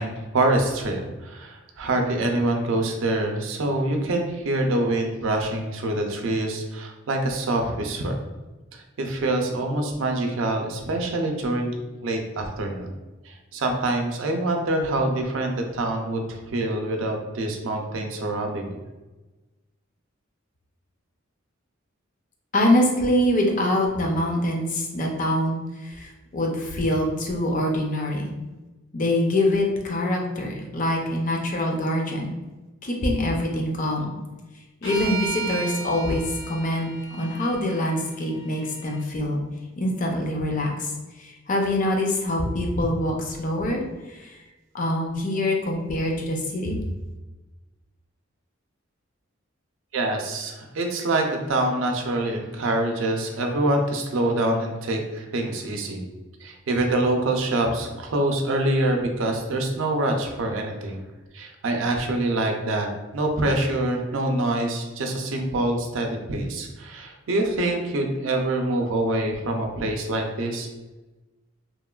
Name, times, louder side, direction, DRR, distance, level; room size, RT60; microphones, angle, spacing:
voice 1, 0.0-8.2 8.7-11.7 12.0-12.9 13.3-18.8 49.9-56.0 56.4-61.0 61.3-70.7, right 2 dB, 80° right, 3 dB, 0.4 m, -25 dB
voice 2, 22.5-28.3 28.9-32.3 32.8-34.1 34.8-36.2 36.5-39.4 39.8-40.9 41.2-43.8 44.1-44.4 44.7-46.8, left 1 dB, 40° left, 0 dB, 0.5 m, -24 dB
sound 1, 34.8-39.0, right 3 dB, 75° left, 1.0 m, -35 dB
3.0 x 2.1 x 2.3 m, 1.1 s
head